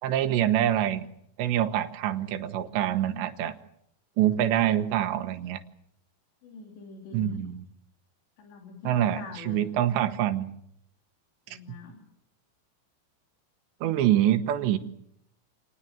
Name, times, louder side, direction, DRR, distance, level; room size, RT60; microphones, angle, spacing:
voice 1, 0.0-1.1 1.4-3.5 4.2-5.6 7.1-7.6 8.8-10.5 13.8-14.8, right 11 dB, 85° right, 9 dB, 3.4 m, -25 dB
voice 2, 6.4-7.5 8.4-9.6 11.5-12.0, left 4 dB, 75° left, 3 dB, 5.2 m, -44 dB
27.5 x 19.5 x 7.1 m, 0.74 s
omnidirectional pair, 5.0 m